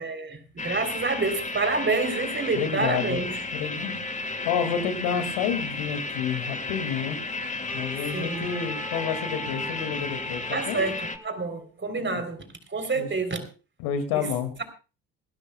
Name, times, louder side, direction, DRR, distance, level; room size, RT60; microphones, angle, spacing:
voice 1, 0.0-3.4 8.1-8.5 10.5-13.5 14.1-14.3, right 3 dB, 30° right, 3.4 m, -28 dB
sound 1, 0.6-11.2, left 3 dB, 20° left, 1.6 m, -33 dB
voice 2, 2.5-3.2 3.5-4.0 4.4-7.2 7.7-10.8 12.0-12.2 12.9-13.1 13.8-14.5, left 7 dB, 75° left, 2.2 m, -29 dB
Wind instrument woodwind instrument, 7.7-11.7, right 1 dB, 5° right, 5.3 m, -43 dB
28.5 x 12.0 x 2.2 m
hypercardioid pair, 55°, 41 cm